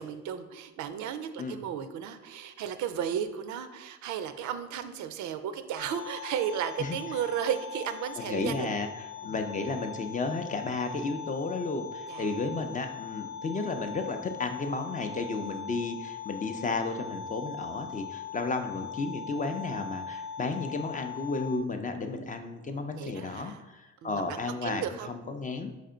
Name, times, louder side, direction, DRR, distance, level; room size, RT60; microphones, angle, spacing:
voice 1, 0.0-8.7 9.2-9.3 12.1-12.4 23.0-23.7 24.0-25.1, right 9 dB, 75° right, 10 dB, 0.4 m, -34 dB
sound 1, 5.8-21.6, left 6 dB, 90° left, 0.5 m, -41 dB
voice 2, 8.3-8.9 9.2-25.7, left 3 dB, 25° left, 6 dB, 0.4 m, -33 dB
4.3 x 3.3 x 3.7 m, 1.0 s
cardioid pair, 90°, 30 cm